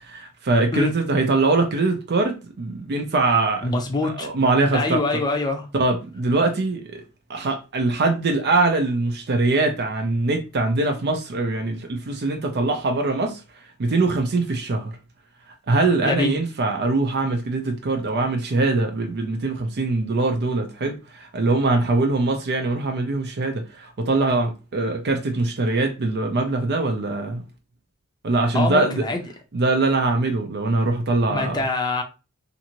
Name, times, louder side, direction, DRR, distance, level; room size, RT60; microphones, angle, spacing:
voice 1, 0.0-3.7 4.0-5.2 5.7-7.0 7.3-13.4 13.8-15.0 15.7-27.4 28.2-29.0 29.5-31.6, right 2 dB, 50° right, 0.5 m, -22 dB
voice 2, 3.6-4.3 4.7-5.7 16.0-16.3 28.5-29.2 31.3-32.0, left 2 dB, 20° left, 0.6 m, -24 dB
2.6 x 2.6 x 2.9 m
head